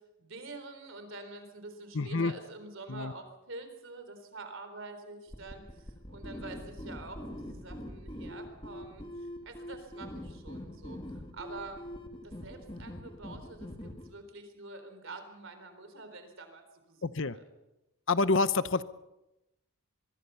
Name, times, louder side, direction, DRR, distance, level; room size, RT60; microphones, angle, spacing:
voice 1, 0.2-9.1 9.4-11.0 11.3-12.0 12.2-16.6 16.9-17.0 17.3-17.4, right 3 dB, 60° right, 7 dB, 3.9 m, -46 dB
voice 2, 1.9-2.3 2.9-3.1 17.0-17.4 18.1-18.8, left 3 dB, 55° left, 14 dB, 0.8 m, -27 dB
sound 1, 5.3-14.1, equal, 20° left, 2.2 m, -44 dB
24.5 x 22.0 x 5.7 m, 0.94 s
head